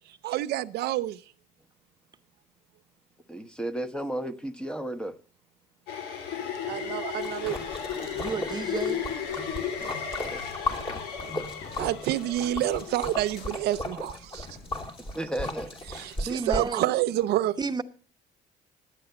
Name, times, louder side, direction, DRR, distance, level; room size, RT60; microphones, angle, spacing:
voice 1, 0.2-1.2 6.6-7.8 11.8-14.5 15.9-17.6, right 14 dB, 75° right, 0.6 m, -28 dB
voice 2, 3.3-5.2 15.0-15.8, right 1 dB, 5° left, 1.1 m, -33 dB
sound 1, 5.9-13.2, left 7 dB, 85° left, 2.6 m, -35 dB
sound 2, 6.4-12.4 13.1-13.9 14.4-15.1 15.4-16.9, left 4 dB, 50° left, 7.1 m, -55 dB
Splash splatter, 7.2-16.7, left 2 dB, 30° left, 3.1 m, -36 dB
voice 3, 8.1-9.0 16.3-16.9 17.6-17.8, right 4 dB, 25° right, 1.0 m, -31 dB
11.5 x 9.2 x 6.9 m
cardioid pair, 110°, 17 cm